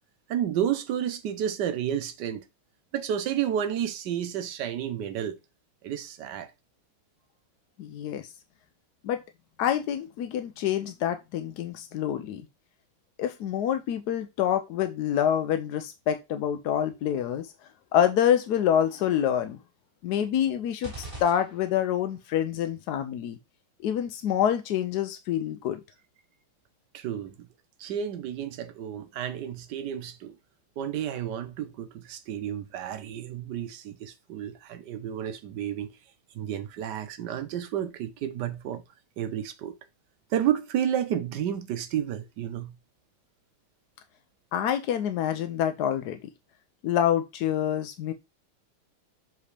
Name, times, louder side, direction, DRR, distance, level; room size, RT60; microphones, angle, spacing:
voice 1, 0.3-2.5 2.9-5.4 5.8-6.5 26.9-27.4 27.8-30.4 30.8-35.9 36.3-38.8 39.2-39.7 40.3-42.7, right 10 dB, 65° right, 1.1 m, -31 dB
voice 2, 7.8-8.3 9.0-9.2 9.6-12.4 13.2-17.5 17.9-19.6 20.0-23.4 23.8-25.8 44.5-46.2 46.8-48.1, left 10 dB, 75° left, 0.9 m, -27 dB
sound 1, 20.8-22.1, right 2 dB, 25° right, 2.7 m, -42 dB
7.3 x 4.2 x 3.3 m
omnidirectional pair, 2.3 m